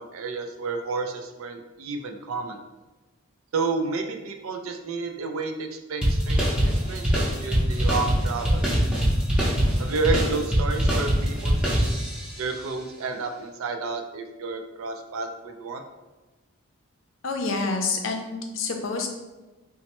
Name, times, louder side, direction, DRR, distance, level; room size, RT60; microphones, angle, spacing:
voice 1, 0.0-2.6 3.5-6.5 6.9-8.6 9.8-11.9 12.4-15.8, right 3 dB, 80° right, 5 dB, 0.4 m, -31 dB
sound 1, 6.0-12.4, equal, 5° right, 0.6 m, -23 dB
voice 2, 17.2-19.1, left 4 dB, 65° left, 4 dB, 0.5 m, -28 dB
4.1 x 2.1 x 2.9 m, 1.1 s
head